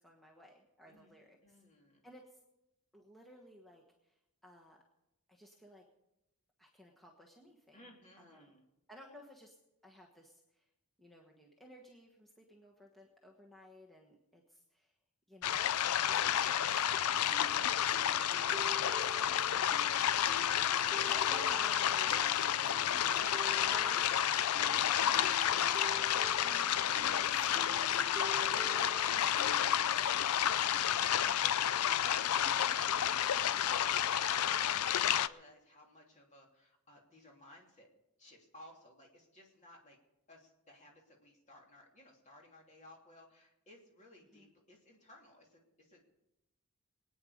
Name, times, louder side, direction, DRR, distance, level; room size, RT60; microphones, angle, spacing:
voice 1, 0.0-1.6 2.0-2.4 2.9-4.8 5.3-5.8 6.6-7.9 8.2-8.6 8.9-9.6 9.8-10.7 11.0-14.9 15.3-18.3 19.5-19.9 20.9-26.1 26.4-27.2 27.5-28.1 28.5-28.7 29.1-29.6 32.6-32.8 33.0-33.1 44.3-44.5, equal, ahead, -2 dB, 1.3 m, -55 dB
voice 2, 1.4-2.0 7.7-8.6 22.8-23.6 27.0-27.9 28.4-29.2 29.6-37.9 38.2-40.0 40.3-46.1, left 1 dB, 30° left, 0 dB, 3.0 m, -56 dB
sound 1, 15.4-35.3, left 10 dB, 75° left, 0.5 m, -31 dB
sound 2, 17.3-30.1, right 3 dB, 20° right, 0.5 m, -50 dB
23.0 x 9.3 x 5.1 m, 0.91 s
head